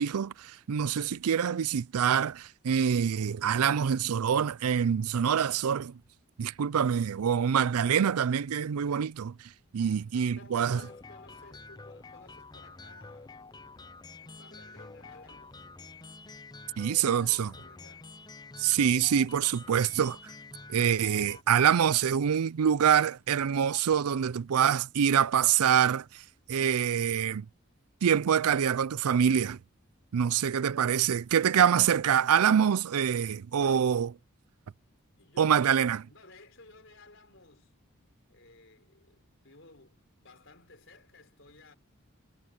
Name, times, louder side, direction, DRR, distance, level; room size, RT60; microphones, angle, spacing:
voice 1, 0.0-5.9 6.4-9.3 9.7-10.8 16.8-17.5 18.6-20.2 20.7-26.2 26.5-27.5 28.0-29.6 30.1-34.2 35.4-36.0, right 8 dB, 90° right, 0.4 m, -25 dB
voice 2, 9.8-13.4 14.2-15.6 16.8-18.1 35.2-37.7 38.3-41.7, left 2 dB, 55° left, 4.8 m, -55 dB
sound 1, 10.7-21.4, left 3 dB, 20° left, 0.5 m, -48 dB
head